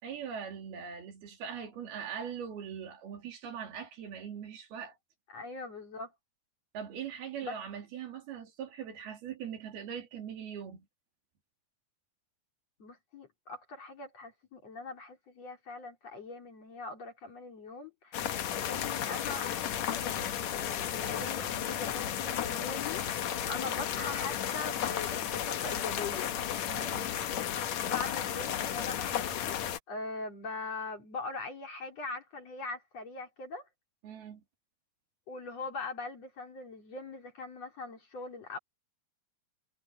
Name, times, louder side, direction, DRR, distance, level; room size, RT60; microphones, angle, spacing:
voice 1, 0.0-5.0 6.7-10.9 26.7-27.1 34.0-34.4, right 8 dB, 70° right, 4.6 m, -41 dB
voice 2, 5.3-6.1 7.4-7.6 12.8-18.3 18.7-19.5 19.9-26.3 27.8-33.7 35.3-38.6, left 3 dB, 40° left, 4.4 m, -41 dB
sound 1, 18.1-29.8, left 10 dB, 65° left, 1.9 m, -33 dB
omnidirectional pair, 4.7 m